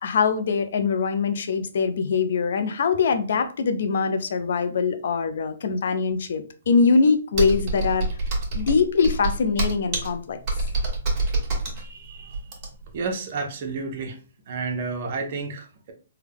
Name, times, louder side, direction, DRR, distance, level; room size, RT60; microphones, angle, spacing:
voice 1, 0.0-8.1 8.5-10.4, left 5 dB, 65° left, 9 dB, 0.5 m, -23 dB
Computer keyboard, 7.3-13.0, right 2 dB, 30° right, 1.3 m, -26 dB
voice 2, 11.8-12.4 12.9-14.2 14.5-15.9, right 4 dB, 45° right, 3 dB, 0.8 m, -31 dB
3.4 x 2.2 x 3.4 m, 0.38 s
hypercardioid pair, 150°, 0 cm